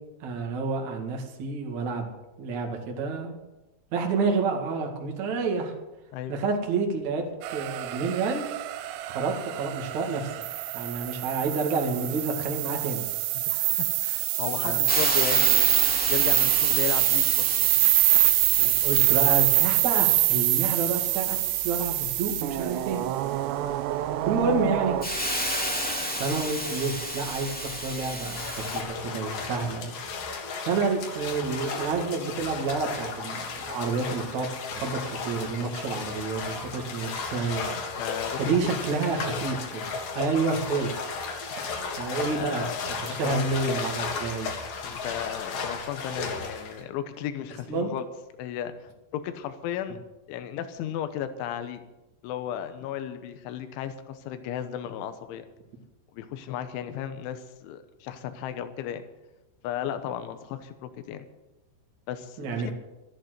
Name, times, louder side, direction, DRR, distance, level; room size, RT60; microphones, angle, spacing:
voice 1, 0.2-2.1 2.4-3.4 3.9-5.7 6.3-8.4 9.0-10.3 10.7-13.0 14.6-14.8 18.6-21.4 21.6-23.0 24.3-25.0 26.2-29.9 30.7-37.7 38.4-40.9 42.0-42.7 43.0-44.5 47.7-47.9 62.4-62.7, right 4 dB, 50° right, 1 dB, 2.8 m, -29 dB
sound 1, 7.4-25.1, right 16 dB, 80° right, 2.8 m, -25 dB
voice 2, 13.4-17.7 20.7-20.8 38.0-38.7 42.3-43.5 44.8-48.1 48.4-50.0 50.3-51.8 52.2-55.5 56.1-59.1 59.6-61.3 62.1-62.7, left 10 dB, 90° left, 9 dB, 3.4 m, -35 dB
Hiss, 14.9-28.8, equal, 5° left, 1.1 m, -33 dB
sound 2, 28.4-46.8, left 4 dB, 55° left, 3.2 m, -34 dB
13.5 x 11.5 x 7.9 m, 1.0 s
omnidirectional pair, 5.3 m